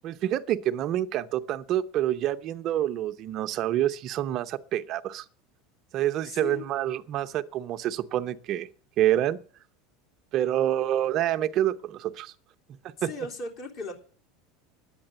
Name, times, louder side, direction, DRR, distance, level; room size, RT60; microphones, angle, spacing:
voice 1, 0.0-5.2 5.9-8.7 9.0-9.4 10.3-12.3 13.0-13.1, right 12 dB, 45° right, 0.7 m, -27 dB
voice 2, 6.2-6.7 13.0-13.9, left 2 dB, 50° left, 3.2 m, -37 dB
10.0 x 8.9 x 8.8 m
supercardioid pair, 140°, 0 cm